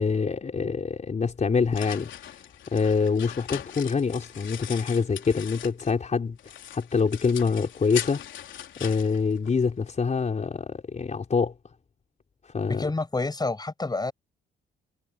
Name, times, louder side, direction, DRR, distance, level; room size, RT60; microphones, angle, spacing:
voice 1, 0.0-2.1 2.7-6.4 6.7-8.2 8.8-11.5 12.5-12.8, left 5 dB, 35° left, 4.7 m, -25 dB
sound 1, 1.3-6.0 6.4-9.9, left 11 dB, 70° left, 3.8 m, -40 dB
voice 2, 12.7-14.1, left 3 dB, 20° left, 7.2 m, -28 dB
cardioid pair, 90°, 20 cm